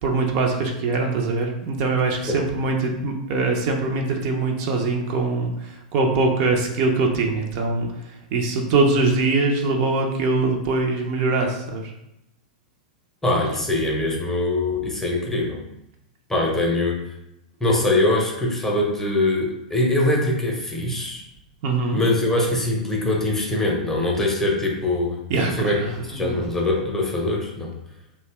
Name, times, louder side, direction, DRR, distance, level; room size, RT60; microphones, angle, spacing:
voice 1, 0.0-11.9 21.6-22.0 25.3-26.4, right 3 dB, 50° right, 2 dB, 0.5 m, -23 dB
voice 2, 13.2-15.6 16.3-17.1 17.6-21.2 21.9-25.2 25.5-27.7, left 2 dB, 10° left, -2 dB, 0.6 m, -23 dB
2.7 x 2.1 x 3.2 m, 0.83 s
hypercardioid pair, 100°, 4 cm